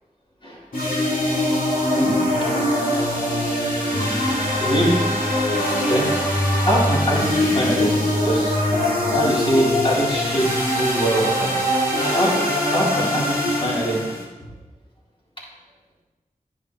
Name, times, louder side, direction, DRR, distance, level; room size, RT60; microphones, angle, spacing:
sound 1, 0.7-14.2, left 1 dB, 80° left, 3.2 m, -22 dB
voice 1, 4.5-5.0 5.8-6.1 6.7-8.6 9.1-10.5 10.8-11.5 12.1-12.3 12.7-14.2, equal, 35° left, -6 dB, 3.9 m, -23 dB
10.5 x 10.5 x 3.2 m, 1.1 s
wide cardioid pair, 55°, 15 cm